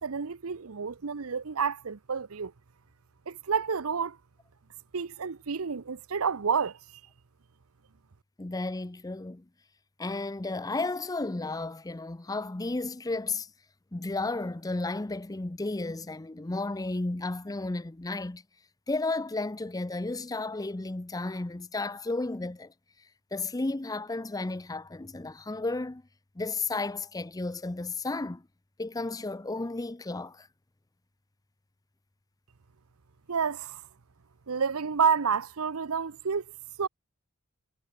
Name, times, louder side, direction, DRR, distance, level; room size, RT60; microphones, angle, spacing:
voice 1, 0.0-2.5 3.3-4.2 4.9-6.8 33.3-33.8 34.5-36.4 36.8-36.9, right 6 dB, 85° right, 0.8 m, -29 dB
voice 2, 8.4-9.4 10.0-13.5 13.9-18.4 18.9-22.7 23.3-26.0 26.4-28.5 28.8-30.5, left 2 dB, 15° left, 0.6 m, -33 dB
head